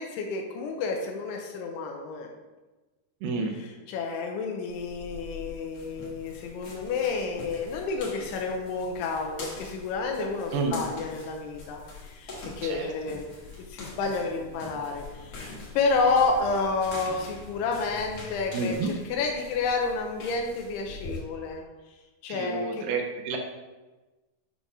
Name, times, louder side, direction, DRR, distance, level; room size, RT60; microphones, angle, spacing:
voice 1, 0.0-2.3 3.9-13.3 13.6-21.6 22.2-22.9, left 4 dB, 90° left, 2 dB, 2.7 m, -30 dB
voice 2, 3.2-3.5 10.5-10.8 12.6-12.9 18.5-18.9 22.3-23.4, right 4 dB, 85° right, 1 dB, 1.8 m, -29 dB
sound 1, 4.7-21.2, left 2 dB, 55° left, 1.7 m, -44 dB
7.8 x 2.7 x 6.0 m, 1.2 s
omnidirectional pair, 4.7 m